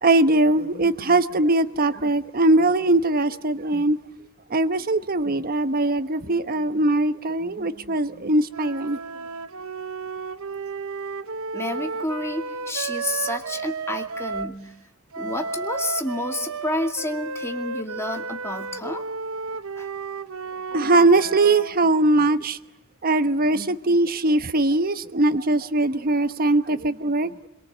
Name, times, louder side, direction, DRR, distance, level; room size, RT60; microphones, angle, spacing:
voice 1, 0.0-4.0 4.5-9.0 20.7-22.6 23.0-27.3, right 2 dB, 45° right, 1.0 m, -21 dB
sound 1, 8.5-14.6 15.1-21.8, right 4 dB, 70° right, 1.0 m, -33 dB
voice 2, 11.5-14.7 15.2-19.0 19.8-19.9, left 1 dB, 10° left, 2.3 m, -30 dB
26.5 x 23.0 x 8.0 m
head